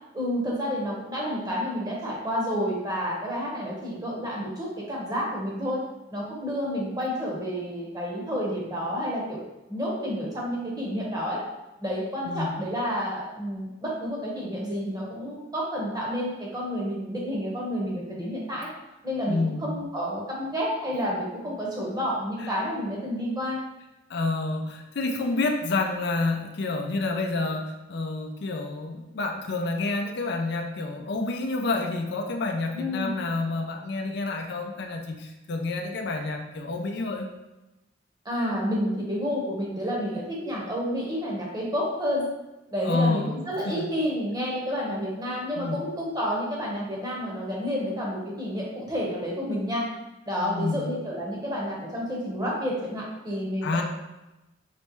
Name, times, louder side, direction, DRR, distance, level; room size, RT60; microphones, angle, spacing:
voice 1, 0.1-5.8 6.1-9.4 9.7-11.4 11.8-18.7 19.0-23.6 32.7-33.1 38.2-42.3 42.7-49.9 50.3-53.8, equal, 20° right, -4 dB, 1.0 m, -30 dB
voice 2, 12.2-12.5 19.3-19.7 22.4-22.5 24.1-37.3 42.8-43.4 43.7-43.9 45.6-45.8 50.4-50.9 53.6-53.8, left 3 dB, 65° left, 3 dB, 0.4 m, -29 dB
4.1 x 3.3 x 3.0 m, 0.97 s
head